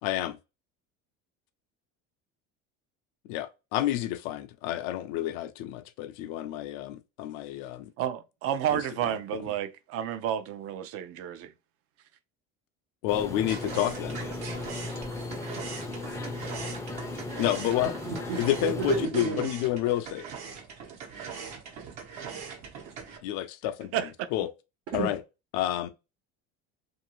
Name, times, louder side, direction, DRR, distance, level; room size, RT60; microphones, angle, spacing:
voice 1, 0.0-0.4 3.3-7.9 8.7-9.1 13.0-14.2 17.4-17.9 18.4-20.2 23.2-24.1 24.3-24.5 24.9-25.2 25.5-25.9, left 13 dB, 90° left, 0.5 m, -29 dB
voice 2, 8.0-11.5 23.9-24.1, right 10 dB, 50° right, 0.5 m, -31 dB
sound 1, 13.1-19.0, left 2 dB, 10° left, 0.4 m, -36 dB
sound 2, 13.5-23.2, right 6 dB, 70° right, 1.1 m, -41 dB
voice 3, 18.1-19.5 24.9-25.1, right 6 dB, 85° right, 1.2 m, -31 dB
2.6 x 2.6 x 2.9 m
cardioid pair, 135°, 29 cm